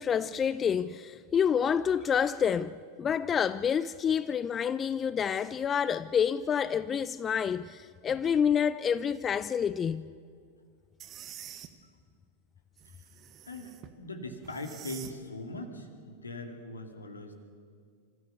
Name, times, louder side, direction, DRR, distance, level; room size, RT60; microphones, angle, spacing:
voice 1, 0.0-10.1, left 7 dB, 25° left, 0.4 m, -28 dB
sound 1, 11.0-11.7 12.8-13.9 14.4-15.2, right 10 dB, 30° right, 1.3 m, -47 dB
voice 2, 13.4-17.3, left 2 dB, 75° left, 2.3 m, -41 dB
26.5 x 14.5 x 7.0 m
figure-of-eight pair, 90°, 0 cm